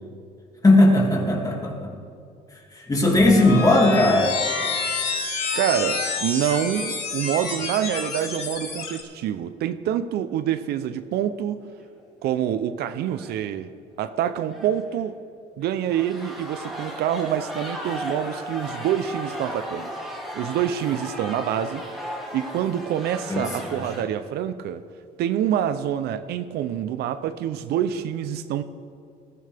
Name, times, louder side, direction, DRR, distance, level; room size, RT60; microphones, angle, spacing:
voice 1, 0.6-1.9 2.5-4.3 23.3-23.8, left 2 dB, 20° left, 0 dB, 2.5 m, -18 dB
sound 1, 3.1-9.0, left 4 dB, 70° left, 2.6 m, -28 dB
voice 2, 5.6-11.6 12.2-13.7 14.0-15.2 15.6-19.9 20.3-21.9 22.3-24.8 25.2-28.6, right 10 dB, 75° right, 12 dB, 0.6 m, -26 dB
sound 2, 11.8-12.0 12.3-12.4 13.0-13.4 14.5-15.0 15.6-24.0, equal, ahead, 2.8 m, -36 dB
19.5 x 14.0 x 3.5 m, 2.4 s
cardioid pair, 110°, 17 cm